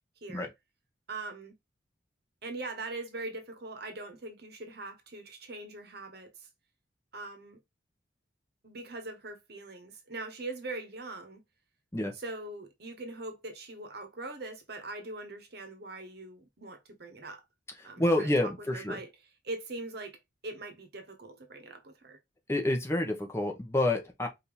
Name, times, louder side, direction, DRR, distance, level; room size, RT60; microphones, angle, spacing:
voice 1, 0.2-0.5 1.1-1.6 2.4-6.5 7.1-7.6 8.6-11.4 12.1-17.4 17.8-19.1 19.4-20.2 20.4-22.2, right 2 dB, 60° right, 1.1 m, -42 dB
voice 2, 17.8-19.0 22.5-24.3, left 1 dB, 15° left, 1.1 m, -28 dB
5.2 x 2.7 x 3.3 m
head